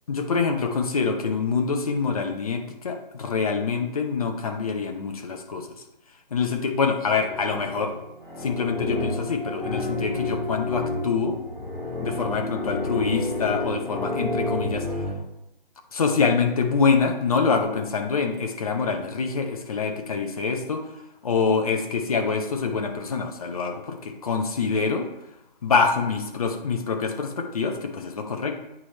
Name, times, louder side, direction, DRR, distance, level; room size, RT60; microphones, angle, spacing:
voice 1, 0.1-5.7 6.3-7.9 8.4-11.4 12.0-14.9 15.9-20.8 21.2-25.1 25.6-28.6, left 5 dB, 40° left, 4 dB, 0.8 m, -25 dB
sound 1, 7.2-15.1, left 2 dB, 5° left, 1.1 m, -30 dB
8.5 x 3.3 x 4.2 m, 0.85 s
figure-of-eight pair, 150°, 30 cm